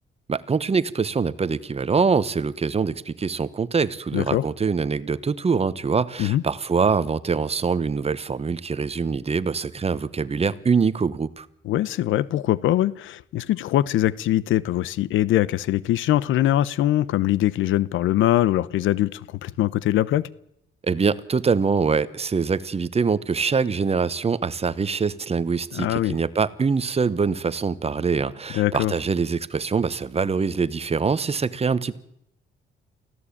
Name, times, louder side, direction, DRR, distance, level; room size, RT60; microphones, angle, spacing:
voice 1, 0.3-11.5 20.9-32.0, right 5 dB, 30° right, 1.2 m, -24 dB
voice 2, 4.1-4.4 6.2-6.4 11.6-20.2 25.7-26.2 28.5-28.9, left 13 dB, 80° left, 0.8 m, -22 dB
25.0 x 16.0 x 8.6 m
cardioid pair, 90°, 20 cm